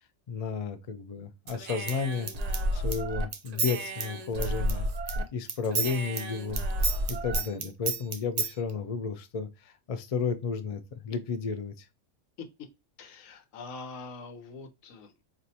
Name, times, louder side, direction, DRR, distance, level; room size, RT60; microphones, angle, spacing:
voice 1, 0.3-2.3 2.7-4.9 5.3-11.9, left 5 dB, 55° left, 0.4 m, -33 dB
Human voice / Scissors, 1.5-5.2 5.5-8.5, right 2 dB, 60° right, 0.4 m, -31 dB
voice 2, 13.0-15.2, left 4 dB, 90° left, 1.1 m, -43 dB
4.4 x 2.5 x 2.6 m
omnidirectional pair, 1.3 m